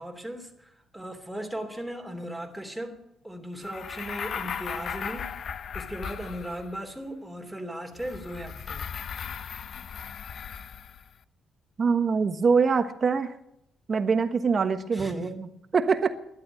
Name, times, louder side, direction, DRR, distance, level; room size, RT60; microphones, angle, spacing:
voice 1, 0.0-5.3 5.7-8.9 14.9-15.3, equal, 5° right, 4 dB, 2.9 m, -37 dB
sound 1, 3.6-6.9 8.0-11.1, left 7 dB, 55° left, 0.7 m, -37 dB
voice 2, 11.8-13.3 13.9-16.1, right 5 dB, 40° right, 9 dB, 1.3 m, -24 dB
11.5 x 11.0 x 9.8 m, 0.80 s
cardioid pair, 90°, 0 cm